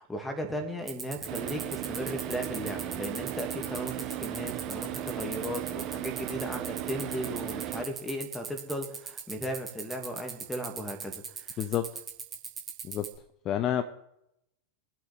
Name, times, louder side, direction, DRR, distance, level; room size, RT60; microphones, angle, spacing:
voice 1, 0.0-11.6, equal, 5° left, 5 dB, 2.2 m, -36 dB
sound 1, 0.9-13.2, right 6 dB, 20° right, 2.1 m, -38 dB
Car / Idling, 1.3-7.9, right 12 dB, 40° right, 1.1 m, -36 dB
voice 2, 11.6-11.9 12.8-13.1 13.4-13.8, left 10 dB, 30° left, 10 dB, 0.6 m, -28 dB
24.0 x 8.1 x 3.5 m, 0.82 s
figure-of-eight pair, 90°, 0 cm